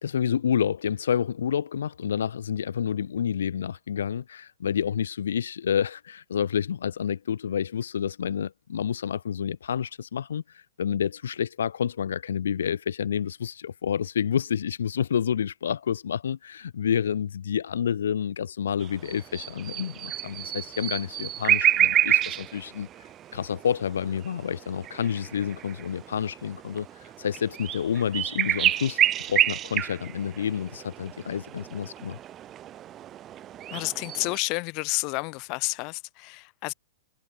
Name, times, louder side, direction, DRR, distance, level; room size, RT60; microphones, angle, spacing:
voice 1, 0.0-10.4 10.8-22.9 23.3-26.9 27.2-32.2, left 8 dB, 80° left, 0.5 m, -29 dB
sound 1, 18.8-34.4, right 12 dB, 30° right, 1.9 m, -29 dB
voice 2, 33.7-36.7, left 30 dB, 45° left, 3.3 m, -30 dB
hypercardioid pair, 115°, 0 cm